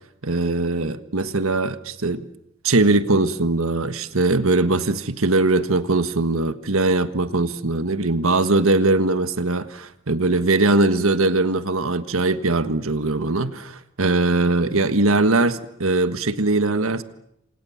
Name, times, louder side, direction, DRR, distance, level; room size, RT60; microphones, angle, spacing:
voice 1, 0.2-2.2 2.6-17.0, right 2 dB, 75° right, 11 dB, 1.5 m, -21 dB
28.5 x 26.5 x 7.3 m, 0.77 s
head